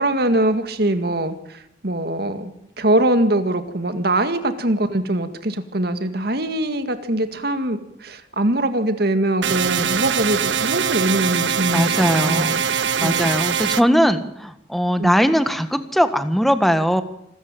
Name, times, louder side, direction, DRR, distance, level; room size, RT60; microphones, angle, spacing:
voice 1, 0.0-2.5 2.8-12.6 13.0-13.3 15.0-15.1, right 1 dB, 60° right, 9 dB, 2.1 m, -22 dB
sound 1, 9.4-13.8, right 7 dB, 85° right, 0.9 m, -22 dB
voice 2, 11.7-12.5 13.0-17.0, equal, ahead, 9 dB, 1.5 m, -19 dB
26.5 x 14.0 x 9.1 m, 0.80 s
head